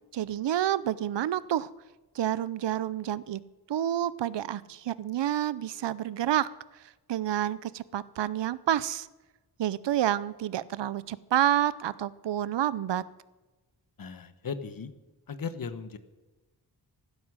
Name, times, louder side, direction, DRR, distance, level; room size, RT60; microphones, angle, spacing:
voice 1, 0.1-1.7 2.1-3.4 3.7-6.5 7.1-9.1 9.6-13.0, right 11 dB, 90° right, 18 dB, 0.6 m, -29 dB
voice 2, 14.0-14.9 15.3-16.0, left 5 dB, 55° left, 11 dB, 1.2 m, -37 dB
15.0 x 12.5 x 6.3 m, 1.1 s
wide cardioid pair, 120°, 41 cm